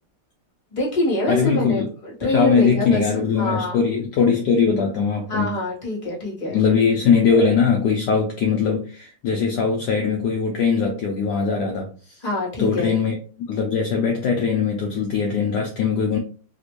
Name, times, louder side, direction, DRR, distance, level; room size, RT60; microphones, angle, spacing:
voice 1, 0.7-3.8 5.3-6.6 12.2-12.9, left 1 dB, 25° left, 1.1 m, -25 dB
voice 2, 1.3-1.9 2.2-5.5 6.5-12.2 12.6-13.2 13.5-16.2, left 5 dB, 75° left, 0.9 m, -21 dB
3.5 x 2.5 x 2.9 m
omnidirectional pair, 2.4 m